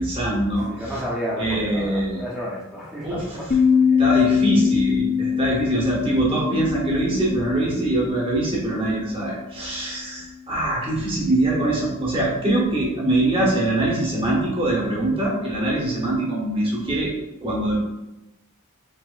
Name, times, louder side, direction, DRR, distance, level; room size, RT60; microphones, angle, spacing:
voice 1, 0.0-0.9 1.4-2.2 3.0-3.2 4.0-17.1 17.4-17.8, right 1 dB, 25° right, -4 dB, 1.1 m, -23 dB
voice 2, 0.6-3.6 3.9-4.0, equal, 5° right, -6 dB, 1.0 m, -31 dB
sound 1, 3.5-8.6, left 6 dB, 40° left, 0.4 m, -22 dB
5.0 x 3.5 x 2.5 m, 0.95 s
head